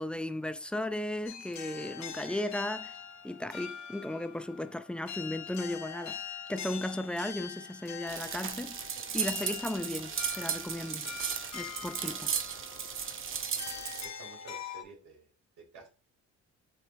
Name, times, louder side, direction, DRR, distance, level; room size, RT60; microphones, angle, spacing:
voice 1, 0.0-3.0 3.2-6.2 6.5-11.1 11.5-12.3, left 1 dB, 5° left, 0.3 m, -36 dB
sound 1, 1.3-14.8, left 8 dB, 65° left, 0.8 m, -44 dB
sound 2, 8.1-14.1, right 7 dB, 45° right, 0.7 m, -36 dB
voice 2, 13.9-15.3 15.7-15.9, right 4 dB, 80° right, 2.2 m, -51 dB
6.5 x 3.0 x 2.6 m
cardioid pair, 90°, 30 cm